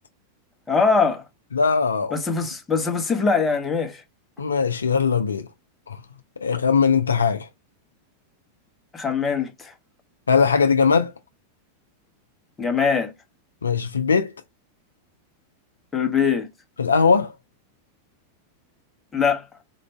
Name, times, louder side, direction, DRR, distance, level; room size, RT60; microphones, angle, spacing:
voice 1, 0.7-1.2 2.1-4.0 8.9-9.7 12.6-13.1 15.9-16.5 19.1-19.4, left 5 dB, 15° left, 1.0 m, -22 dB
voice 2, 1.5-2.2 4.4-5.5 5.9-6.0 6.4-7.5 10.3-11.1 13.6-14.3 16.8-17.3, left 5 dB, 75° left, 0.4 m, -20 dB
4.4 x 2.5 x 3.1 m
figure-of-eight pair, 90°, 0 cm